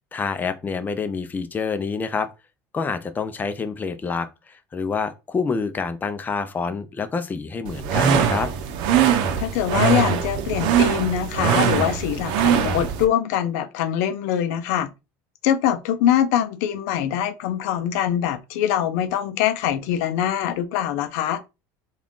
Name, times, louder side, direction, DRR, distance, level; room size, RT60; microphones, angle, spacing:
voice 1, 0.1-2.3 2.7-8.5, left 5 dB, 20° left, 0.5 m, -27 dB
sound 1, 7.7-13.0, right 8 dB, 65° right, 0.7 m, -21 dB
voice 2, 9.4-14.9 15.4-21.4, left 10 dB, 80° left, 0.5 m, -23 dB
3.5 x 2.4 x 3.6 m
supercardioid pair, 110°, 9 cm